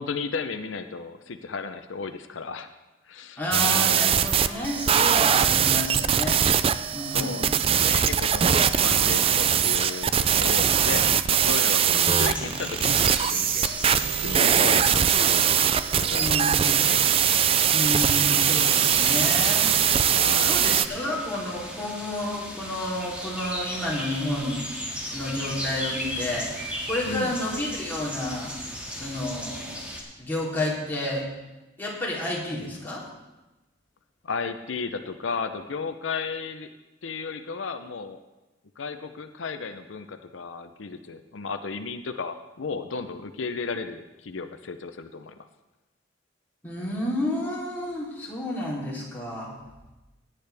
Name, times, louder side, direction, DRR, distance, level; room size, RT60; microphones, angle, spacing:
voice 1, 0.0-2.7 3.1-3.4 7.1-13.7 14.2-15.6 15.9-17.0 20.1-20.6 27.0-27.4 34.2-36.7 37.0-38.2 38.8-45.5, left 4 dB, 90° left, 8 dB, 0.6 m, -34 dB
voice 2, 3.4-6.4 6.9-7.6 11.9-12.4 16.1-16.9 17.7-20.1 20.4-24.7 25.1-28.5 28.9-29.8 30.2-31.2 31.8-33.0 46.6-49.5, left 1 dB, 10° left, -5 dB, 3.2 m, -31 dB
sound 1, 3.5-20.9, right 8 dB, 30° right, 0.3 m, -21 dB
sound 2, 12.0-30.0, equal, 5° right, 2.0 m, -36 dB
17.0 x 9.9 x 3.4 m, 1.1 s
head